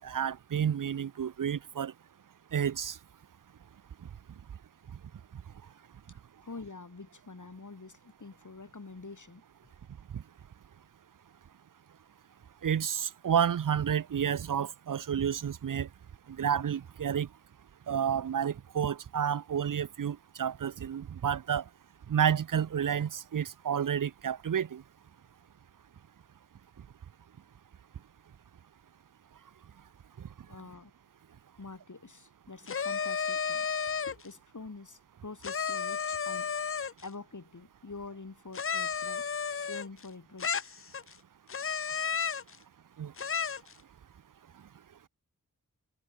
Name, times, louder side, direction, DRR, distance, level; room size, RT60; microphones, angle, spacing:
voice 1, 0.0-1.9 2.5-3.0 10.1-10.2 12.6-15.9 16.3-17.3 17.9-21.6 22.1-24.8 30.2-30.3 43.0-43.1, right 8 dB, 75° right, 0.5 m, -30 dB
voice 2, 6.1-9.7 30.5-30.9 31.6-39.3 39.7-40.7, left 3 dB, 65° left, 3.9 m, -47 dB
sound 1, 32.7-34.3 35.4-37.1 38.5-40.1 40.4-41.1 41.5-42.5 43.2-43.7, left 6 dB, 40° left, 0.5 m, -32 dB
wide cardioid pair, 60°, 33 cm